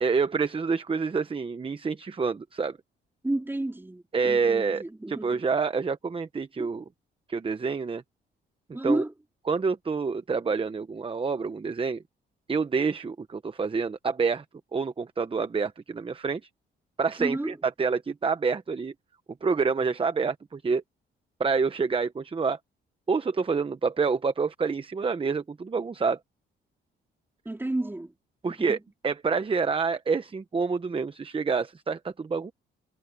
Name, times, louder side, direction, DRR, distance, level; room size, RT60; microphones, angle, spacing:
voice 1, 0.0-2.8 4.1-6.8 7.3-8.0 8.8-9.0 9.5-12.0 12.5-14.4 14.7-16.4 17.0-18.9 19.4-20.8 21.4-22.6 23.1-26.2 28.4-28.8 29.0-32.5, right 5 dB, 25° right, 1.0 m, -27 dB
voice 2, 3.2-5.3 6.6-6.7 8.7-9.1 17.2-17.6 27.5-28.1 28.6-28.8, right 1 dB, 10° right, 3.3 m, -31 dB
cardioid pair, 90°, 20 cm